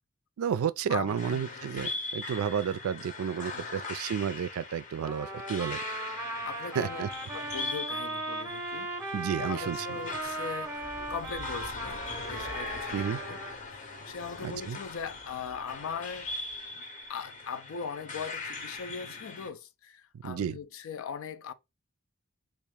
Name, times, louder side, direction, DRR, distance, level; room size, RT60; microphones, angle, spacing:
voice 1, 0.4-5.8 6.8-7.1 9.1-9.9 12.9-13.2 14.4-14.8 20.1-20.6, right 8 dB, 80° right, 0.3 m, -31 dB
voice 2, 0.9-1.5 3.5-3.7 6.4-7.1 7.3-13.4 13.7-16.3 16.7-16.8 17.1-21.5, left 6 dB, 70° left, 0.4 m, -40 dB
sound 1, 1.1-19.5, left 3 dB, 40° left, 0.7 m, -40 dB
Trumpet, 5.0-13.5, right 2 dB, 15° right, 0.6 m, -38 dB
sound 2, 9.9-16.6 17.0-17.1 18.2-18.3 18.5-18.8, right 1 dB, 90° left, 1.3 m, -51 dB
3.5 x 2.5 x 3.3 m
head